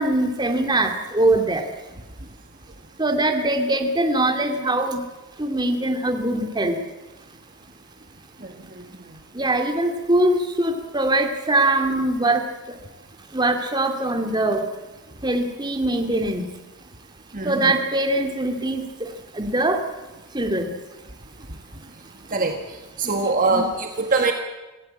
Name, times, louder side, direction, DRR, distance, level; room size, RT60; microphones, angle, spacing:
voice 1, 0.0-1.7 3.0-5.0 5.4-6.8 9.3-12.5 13.3-14.6 15.2-16.5 17.4-19.8 20.3-20.7 23.0-23.7, right 1 dB, 20° right, 4 dB, 2.4 m, -22 dB
voice 2, 17.3-17.7 22.3-22.6 23.0-24.3, right 3 dB, 40° right, 4 dB, 1.8 m, -22 dB
25.0 x 16.0 x 8.7 m, 1.1 s
head